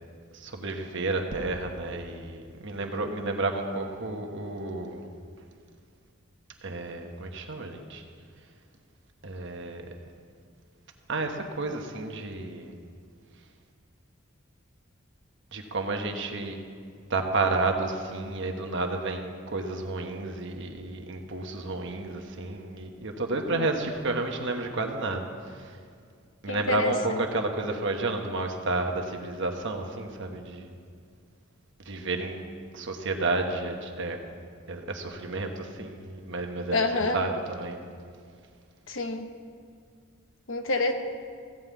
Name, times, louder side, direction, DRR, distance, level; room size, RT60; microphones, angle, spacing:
voice 1, 0.3-5.1 6.6-8.0 9.2-9.8 11.1-12.7 15.5-16.6 17.1-25.7 26.4-30.8 31.8-32.4 32.7-34.2 34.7-36.9 37.1-37.9, right 2 dB, 60° right, 4 dB, 1.2 m, -31 dB
voice 2, 26.5-27.2 36.7-37.3 38.9-39.3 40.5-40.9, left 2 dB, 65° left, 6 dB, 1.0 m, -28 dB
15.5 x 5.6 x 8.3 m, 2.2 s
head